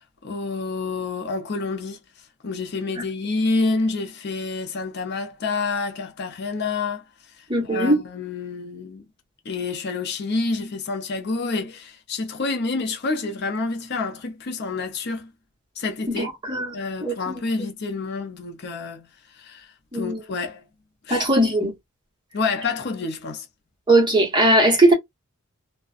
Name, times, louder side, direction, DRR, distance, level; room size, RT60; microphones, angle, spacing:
voice 1, 0.2-2.0 2.4-7.0 7.4-9.0 9.5-15.3 15.8-16.3 16.7-19.1 19.3-19.7 19.9-20.6 21.1-21.2 22.3-23.5, left 3 dB, 50° left, 0.6 m, -28 dB
voice 2, 7.5-8.0 16.1-16.7 17.0-17.3 19.9-20.2 21.1-21.7 23.9-24.9, right 1 dB, 20° right, 1.1 m, -19 dB
2.4 x 2.2 x 2.4 m
head